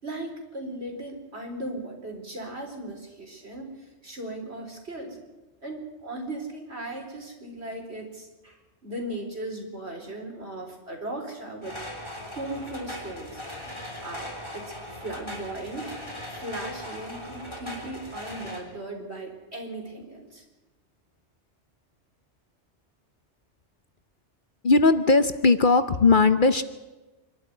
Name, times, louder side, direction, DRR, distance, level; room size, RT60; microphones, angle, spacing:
voice 1, 0.0-5.2 5.6-11.8 12.3-13.4 14.0-15.9 16.3-20.4, right 1 dB, 65° right, 2 dB, 4.5 m, -37 dB
sound 1, 11.6-18.6, left 1 dB, 25° left, 3.6 m, -39 dB
voice 2, 24.6-26.6, left 3 dB, 50° left, 11 dB, 1.0 m, -19 dB
26.0 x 12.5 x 9.4 m, 1.1 s
omnidirectional pair, 1.2 m